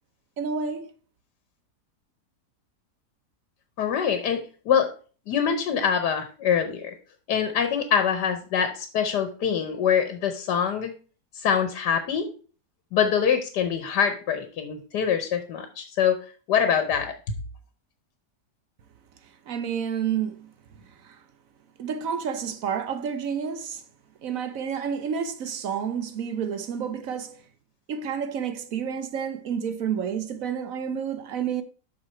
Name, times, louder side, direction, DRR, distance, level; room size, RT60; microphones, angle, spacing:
voice 1, 0.4-0.9 19.2-21.2 21.8-23.8 24.2-27.4 27.9-31.6, right 7 dB, 60° right, 1.2 m, -30 dB
voice 2, 3.8-4.9 5.3-6.9 7.3-10.9 11.3-12.3 12.9-16.2 16.5-17.1, left 7 dB, 80° left, 1.5 m, -24 dB
7.6 x 5.8 x 4.3 m
omnidirectional pair, 1.7 m